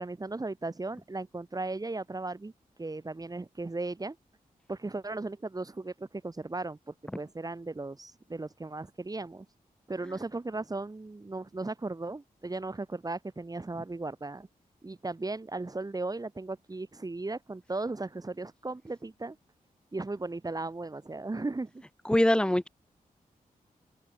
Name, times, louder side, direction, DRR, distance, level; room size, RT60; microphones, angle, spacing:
voice 1, 0.0-2.5 2.8-4.2 4.7-9.5 9.9-14.5 14.8-19.4 19.9-21.8, right 2 dB, 25° right, 0.9 m, -36 dB
voice 2, 22.1-22.7, left 1 dB, 5° left, 0.4 m, -23 dB
open air
cardioid pair, 45°, 15 cm